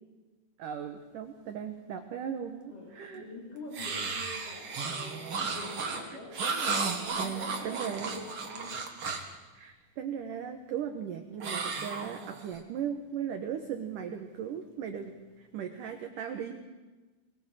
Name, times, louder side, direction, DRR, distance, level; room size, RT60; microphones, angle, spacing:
voice 1, 0.6-3.2 6.1-6.2 7.2-8.1 9.5-16.6, right 8 dB, 65° right, 5 dB, 2.2 m, -37 dB
voice 2, 2.7-6.3 6.7-8.8, left 2 dB, 50° left, -4 dB, 5.7 m, -46 dB
sound 1, 3.7-9.4 11.4-12.6, right 4 dB, 45° right, 1.9 m, -34 dB
22.0 x 20.0 x 7.6 m, 1.2 s
omnidirectional pair, 5.2 m